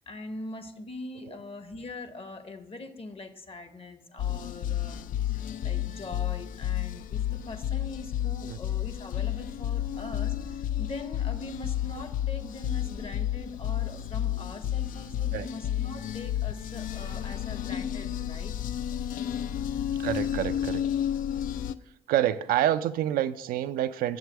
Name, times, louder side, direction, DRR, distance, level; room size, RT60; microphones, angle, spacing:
voice 1, 0.0-5.0 5.3-18.5, left 2 dB, 40° left, 10 dB, 0.9 m, -42 dB
sound 1, 4.2-21.7, left 11 dB, 65° left, 0.4 m, -31 dB
voice 2, 20.0-20.8 22.1-24.2, right 12 dB, 75° right, 11 dB, 0.4 m, -27 dB
7.2 x 4.9 x 6.2 m, 0.83 s
hypercardioid pair, 50°, 15 cm